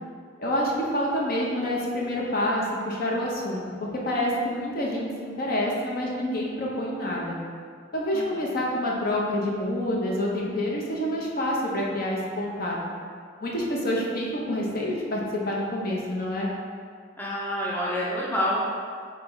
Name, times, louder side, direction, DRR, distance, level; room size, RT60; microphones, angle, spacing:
voice 1, 0.4-3.6 3.9-7.4 7.9-12.8 13.4-16.5, left 1 dB, 50° left, -3 dB, 0.7 m, -27 dB
voice 2, 17.2-18.6, equal, 10° left, -6 dB, 0.5 m, -27 dB
3.9 x 3.3 x 3.9 m, 2.1 s
head